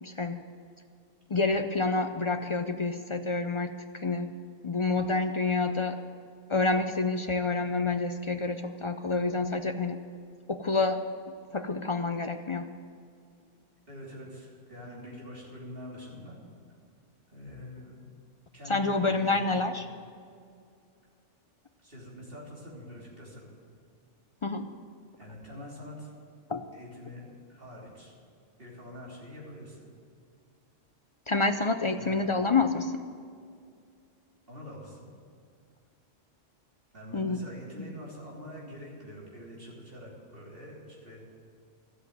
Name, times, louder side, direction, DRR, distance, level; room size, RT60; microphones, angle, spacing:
voice 1, 0.0-0.4 1.3-4.4 4.6-6.0 6.5-10.0 10.5-11.0 11.5-12.7 18.7-19.9 24.4-24.7 26.5-26.6 31.3-33.0 37.1-37.5 37.8-37.9, left 3 dB, 45° left, 8 dB, 0.4 m, -28 dB
voice 2, 13.9-16.4 17.3-18.0 18.5-19.5 21.8-23.5 25.2-26.1 26.7-27.2 27.5-28.1 28.6-29.8 32.0-32.3 34.5-35.1 36.9-41.3, left 1 dB, 50° right, -4 dB, 3.5 m, -45 dB
13.0 x 8.1 x 9.2 m, 2.3 s
omnidirectional pair, 1.3 m